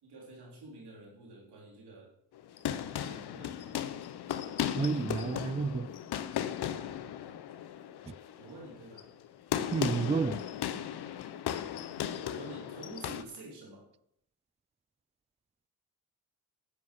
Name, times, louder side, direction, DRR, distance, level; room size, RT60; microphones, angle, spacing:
voice 1, 0.0-2.1 3.1-3.8 8.4-9.1 12.3-13.8, right 2 dB, 90° right, 4.0 m, -48 dB
sound 1, 2.4-13.2, left 10 dB, 85° left, 0.9 m, -36 dB
voice 2, 4.8-5.9 9.7-10.4, right 5 dB, 20° right, 0.3 m, -30 dB
9.6 x 8.1 x 7.8 m
cardioid pair, 50°, 38 cm